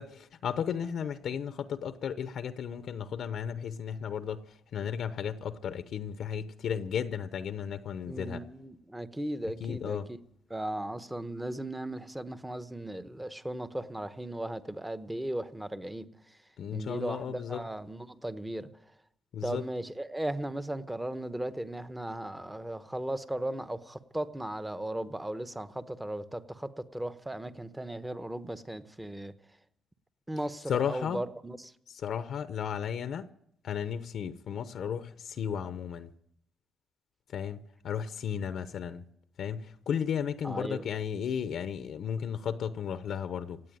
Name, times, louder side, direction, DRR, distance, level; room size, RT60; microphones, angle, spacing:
voice 1, 0.0-4.4 4.7-8.4 9.6-10.1 16.6-17.6 19.3-19.6 30.7-31.2 31.9-33.3 33.6-36.1 37.3-39.0 39.4-43.6, left 8 dB, 65° left, 0.7 m, -34 dB
voice 2, 8.1-10.0 10.5-16.1 16.7-18.7 19.4-29.3 30.3-31.7 40.4-40.8, right 1 dB, 10° right, 1.0 m, -36 dB
17.5 x 8.3 x 9.2 m
cardioid pair, 90°, 0 cm